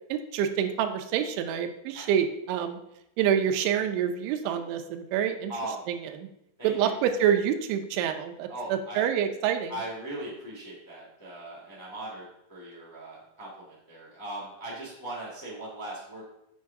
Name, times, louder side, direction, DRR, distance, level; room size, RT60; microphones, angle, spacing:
voice 1, 0.1-2.8 3.2-5.5 5.9-6.3 6.6-9.8, right 9 dB, 90° right, 6 dB, 3.2 m, -27 dB
voice 2, 5.5-5.8 6.6-7.0 8.5-9.0 9.7-16.2, right 1 dB, 5° left, -6 dB, 1.6 m, -39 dB
7.6 x 7.5 x 3.6 m, 0.82 s
omnidirectional pair, 5.3 m